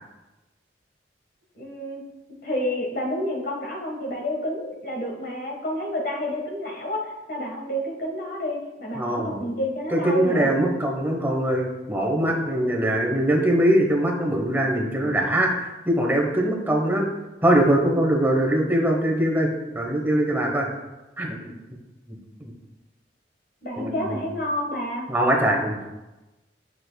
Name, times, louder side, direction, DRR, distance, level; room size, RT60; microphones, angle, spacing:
voice 1, 1.5-2.0 2.4-10.5 23.6-25.1, equal, 55° left, 0 dB, 1.4 m, -29 dB
voice 2, 9.0-9.4 9.9-17.1 17.4-19.5 19.7-20.7 21.2-21.5 22.4-22.5 23.8-24.2 25.1-25.8, right 1 dB, 10° right, 0 dB, 1.0 m, -22 dB
7.6 x 6.2 x 2.2 m, 1.1 s
head